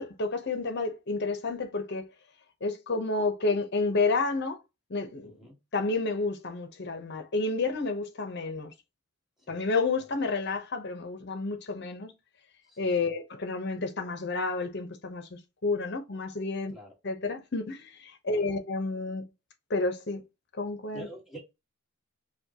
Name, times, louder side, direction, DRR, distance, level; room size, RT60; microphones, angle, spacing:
voice 1, 0.0-2.0 2.6-4.6 4.9-5.4 5.7-8.7 9.5-12.1 12.8-16.7 17.0-19.3 19.7-20.2 20.6-21.1, left 3 dB, 50° left, 0.8 m, -30 dB
voice 2, 5.2-5.6 9.5-9.6 12.7-13.1 16.7-16.9 18.2-18.5 20.9-21.5, right 1 dB, ahead, 1.5 m, -47 dB
5.1 x 2.2 x 2.8 m
head